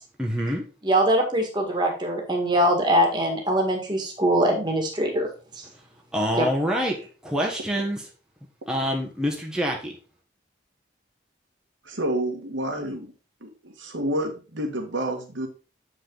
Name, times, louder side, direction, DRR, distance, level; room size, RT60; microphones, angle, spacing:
voice 1, 0.2-0.6 6.1-7.0 7.2-8.0 8.7-9.9, equal, 5° right, -1 dB, 1.1 m, -26 dB
voice 2, 0.8-5.3 6.4-6.5, right 1 dB, 25° right, 2 dB, 1.7 m, -22 dB
voice 3, 11.8-13.1 13.4-15.5, right 1 dB, 85° right, 3 dB, 1.6 m, -29 dB
7.6 x 5.0 x 3.8 m, 0.35 s
head